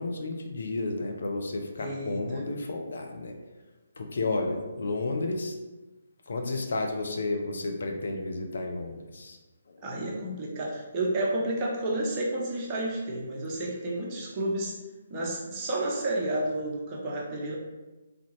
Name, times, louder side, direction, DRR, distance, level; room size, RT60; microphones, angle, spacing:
voice 1, 0.0-3.3 4.0-5.5 6.3-9.4 9.7-9.8, left 2 dB, 55° left, 3 dB, 0.5 m, -32 dB
voice 2, 1.8-2.4 9.8-14.8 15.1-17.6, right 1 dB, 25° right, -4 dB, 0.9 m, -31 dB
3.6 x 3.5 x 3.1 m, 1.2 s
figure-of-eight pair, 140°, 0 cm